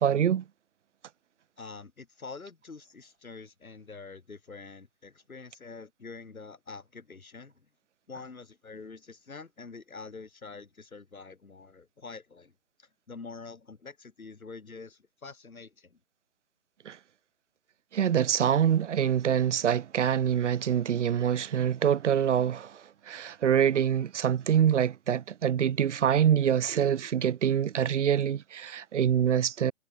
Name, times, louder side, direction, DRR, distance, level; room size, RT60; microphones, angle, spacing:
voice 1, 0.0-0.4 16.9-17.0 17.9-22.7 23.1-29.7, right 9 dB, 60° right, 0.5 m, -25 dB
voice 2, 1.6-7.5 8.1-12.5 12.8-16.0, left 4 dB, 85° left, 6.2 m, -46 dB
hypercardioid pair, 160°, 41 cm